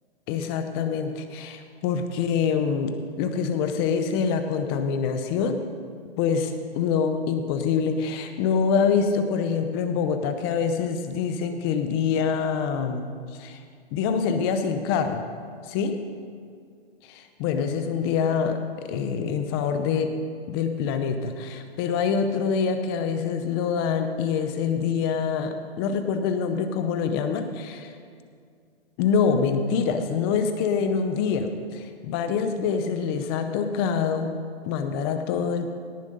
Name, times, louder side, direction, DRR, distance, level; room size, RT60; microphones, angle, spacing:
voice 1, 0.3-5.6 6.2-13.6 13.9-15.2 15.7-16.0 17.0-20.1 20.5-27.9 29.0-34.4 34.6-35.7, left 6 dB, 25° left, 8 dB, 0.6 m, -25 dB
18.0 x 7.2 x 5.3 m, 2.2 s
hypercardioid pair, 150°, 32 cm